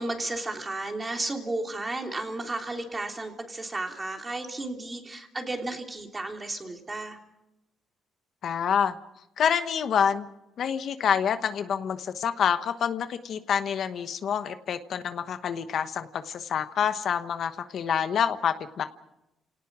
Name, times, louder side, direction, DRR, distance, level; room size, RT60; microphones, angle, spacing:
voice 1, 0.0-7.2, right 2 dB, 25° right, 3 dB, 3.2 m, -33 dB
voice 2, 8.4-8.9 9.4-10.3 10.6-18.8, left 8 dB, 65° left, 10 dB, 1.1 m, -27 dB
30.0 x 18.0 x 6.2 m, 0.90 s
cardioid pair, 90°, 0 cm